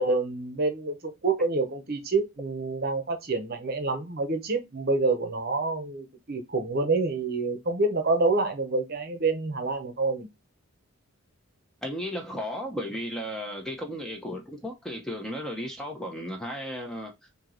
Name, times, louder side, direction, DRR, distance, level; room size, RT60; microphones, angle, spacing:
voice 1, 0.0-10.3, right 3 dB, 45° right, 0.9 m, -27 dB
voice 2, 11.8-17.3, equal, 5° left, 0.7 m, -35 dB
4.5 x 2.9 x 3.8 m
head